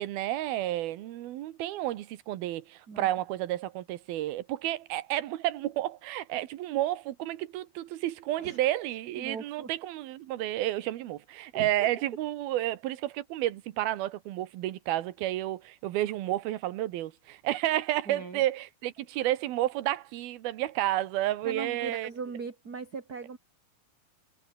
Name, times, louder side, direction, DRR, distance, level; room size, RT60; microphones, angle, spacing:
voice 1, 0.0-22.1, right 14 dB, 90° right, 3.1 m, -31 dB
voice 2, 9.2-9.7 11.5-11.9 18.1-18.4 21.4-23.4, right 5 dB, 25° right, 2.9 m, -39 dB
omnidirectional pair, 4.2 m